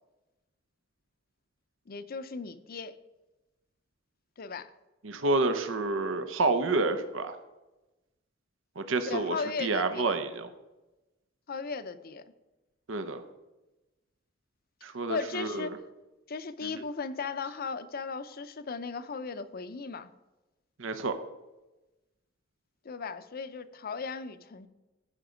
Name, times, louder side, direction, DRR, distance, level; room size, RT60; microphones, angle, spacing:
voice 1, 1.9-3.0 4.4-4.7 9.1-10.2 11.5-12.2 15.1-15.7 16.3-20.1 22.8-24.7, left 4 dB, 50° left, 12 dB, 0.6 m, -37 dB
voice 2, 5.0-7.4 8.8-10.5 12.9-13.2 14.8-15.7 16.6-16.7 20.8-21.1, right 3 dB, 75° right, 9 dB, 0.8 m, -29 dB
15.0 x 5.3 x 5.0 m, 1.1 s
head